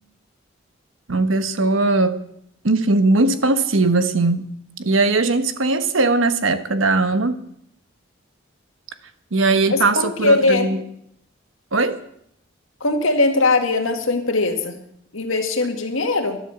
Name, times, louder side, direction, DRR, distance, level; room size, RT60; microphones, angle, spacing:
voice 1, 1.1-2.2 2.6-4.5 4.8-7.4 9.3-10.8 11.7-12.0, right 3 dB, 85° right, 1.1 m, -19 dB
voice 2, 9.7-10.7 12.8-14.7 15.1-16.4, left 3 dB, 90° left, 2.0 m, -20 dB
12.0 x 11.0 x 7.1 m
head